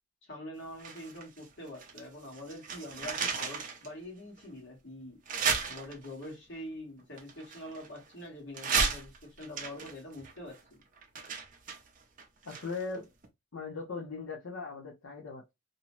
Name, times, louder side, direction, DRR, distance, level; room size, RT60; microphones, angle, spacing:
voice 1, 0.2-5.2 5.7-10.8, left 1 dB, 55° left, 1.3 m, -45 dB
sound 1, 0.8-2.1 2.3-3.9 4.4-4.5 5.3-6.3 7.2-8.1 8.5-13.0 13.2-13.3, right 5 dB, 35° right, 0.5 m, -34 dB
voice 2, 12.4-13.1 13.5-15.5, left 4 dB, 70° left, 0.7 m, -39 dB
2.6 x 2.1 x 2.9 m
head